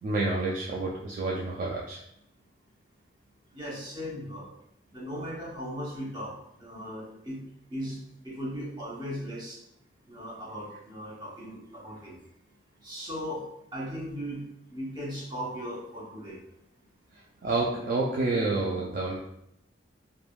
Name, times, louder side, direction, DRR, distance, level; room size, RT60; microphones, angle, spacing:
voice 1, 0.0-2.0 17.1-19.2, right 3 dB, 45° right, -3 dB, 0.3 m, -29 dB
voice 2, 3.5-4.5 4.9-6.3 6.6-7.4 7.7-8.0 8.2-9.6 10.1-12.2 12.8-13.5 13.7-14.4 14.7-16.4, equal, 25° right, -5 dB, 0.7 m, -37 dB
3.2 x 2.1 x 2.3 m, 0.77 s
head